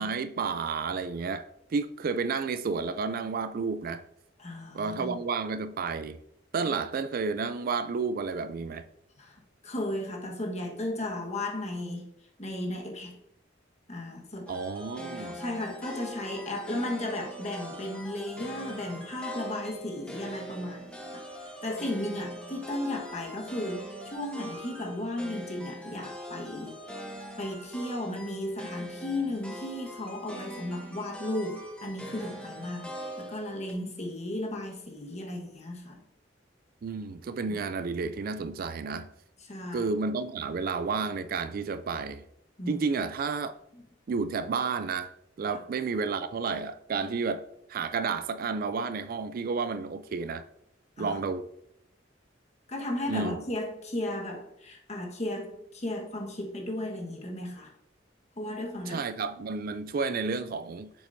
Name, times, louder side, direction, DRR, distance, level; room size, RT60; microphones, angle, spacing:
voice 1, 0.0-4.0 4.7-6.2 6.5-8.9 14.5-15.4 36.8-39.1 39.7-42.2 42.7-43.5 44.1-47.4 47.7-50.4 51.0-51.5 53.1-53.4 58.9-60.9, right 4 dB, 50° right, 0.3 m, -31 dB
voice 2, 4.4-5.2 9.2-12.1 12.4-13.1 13.9-14.5 15.1-21.0 21.4-27.0 27.4-36.0 37.5-37.6 39.5-39.9 42.6-42.7 43.7-43.8 51.0-51.2 52.7-57.7 58.4-59.0, left 1 dB, 35° left, 1.4 m, -35 dB
sound 1, 14.5-33.7, equal, 5° left, 1.0 m, -42 dB
7.7 x 7.1 x 2.7 m
head